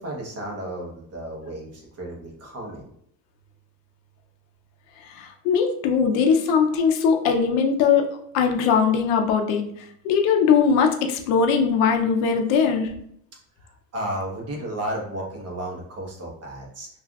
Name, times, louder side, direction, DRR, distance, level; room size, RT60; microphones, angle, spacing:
voice 1, 0.0-2.9 13.6-16.9, right 1 dB, 35° right, -1 dB, 1.0 m, -33 dB
voice 2, 5.1-8.0 8.3-9.7 10.0-12.9, left 6 dB, 80° left, 3 dB, 0.6 m, -20 dB
3.4 x 2.4 x 2.3 m, 0.69 s
cardioid pair, 115°, 44 cm